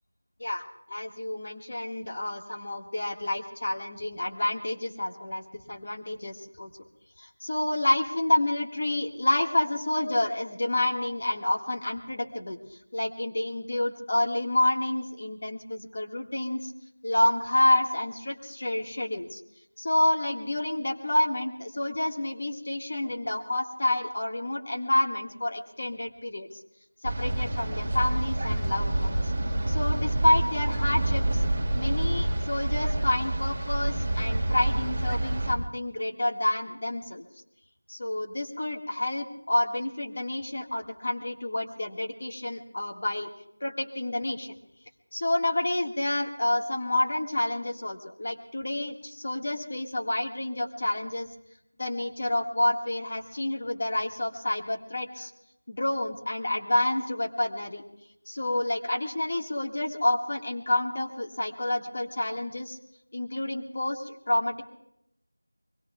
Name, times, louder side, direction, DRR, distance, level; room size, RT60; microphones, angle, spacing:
voice 1, 0.4-5.4 5.7-6.7 7.2-16.7 17.0-19.4 19.8-26.5 27.0-29.1 29.7-31.4 31.7-37.2 37.9-43.3 43.6-44.5 45.1-51.3 51.8-55.3 55.7-57.8 58.3-62.8 63.1-64.6, left 1 dB, 30° left, 2 dB, 1.7 m, -29 dB
sound 1, 27.0-35.5, right 1 dB, 20° right, 1.7 m, -27 dB
24.5 x 21.5 x 2.3 m, 0.81 s
figure-of-eight pair, 175°, 0 cm